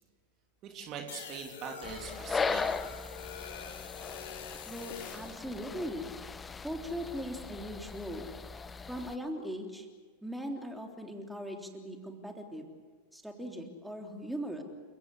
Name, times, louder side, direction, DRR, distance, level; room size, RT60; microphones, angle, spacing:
voice 1, 0.6-3.1, right 6 dB, 35° right, 3 dB, 3.0 m, -43 dB
sound 1, 1.1-5.4, left 7 dB, 55° left, 3.7 m, -45 dB
sound 2, 1.8-9.2, left 4 dB, 15° left, 0.9 m, -38 dB
voice 2, 4.7-6.1 6.6-8.3 8.9-9.9 10.2-12.7 13.1-14.6, equal, ahead, 2 dB, 3.4 m, -39 dB
30.0 x 17.5 x 8.2 m, 1.5 s
figure-of-eight pair, 90°, 0 cm